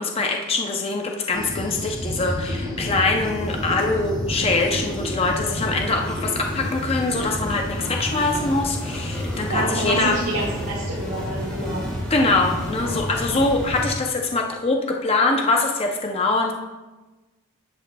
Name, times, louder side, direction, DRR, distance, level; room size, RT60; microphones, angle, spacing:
voice 1, 0.0-10.2 12.1-16.5, left 3 dB, 25° left, 2 dB, 0.6 m, -23 dB
sound 1, 1.3-13.9, equal, 5° left, 2.3 m, -30 dB
voice 2, 9.5-11.8, right 1 dB, 75° right, -7 dB, 2.1 m, -27 dB
10.5 x 7.6 x 2.3 m, 1.2 s
head